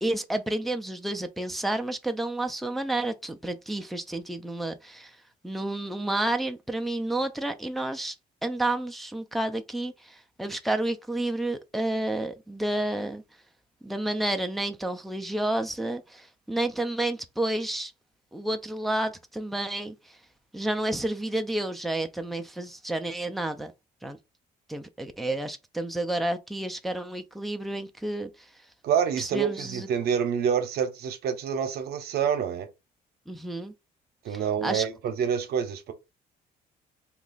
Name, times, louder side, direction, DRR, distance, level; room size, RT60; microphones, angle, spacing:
voice 1, 0.0-5.2 5.4-8.2 8.4-13.2 13.8-17.9 18.3-20.2 20.5-23.7 24.0-24.2 24.7-28.3 29.2-29.9 33.3-33.7 34.3-34.9, right 1 dB, ahead, 0.4 m, -30 dB
voice 2, 28.8-32.7 34.2-35.9, right 8 dB, 70° right, 0.8 m, -27 dB
2.9 x 2.4 x 3.8 m
cardioid pair, 110°, 17 cm